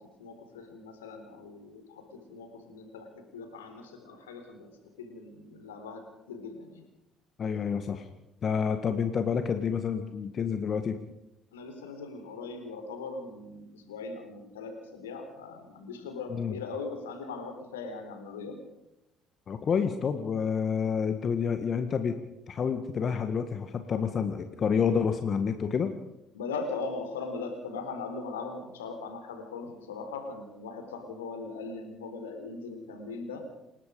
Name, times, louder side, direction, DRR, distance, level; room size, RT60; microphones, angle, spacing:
voice 1, 0.0-4.7 5.0-6.8 11.5-18.6 26.3-33.4, left 4 dB, 80° left, 6 dB, 4.1 m, -40 dB
voice 2, 7.4-8.1 8.4-11.0 16.3-16.6 19.5-22.2 22.5-25.9, left 6 dB, 45° left, 8 dB, 1.7 m, -29 dB
28.5 x 18.0 x 5.2 m, 0.88 s
figure-of-eight pair, 50°, 0 cm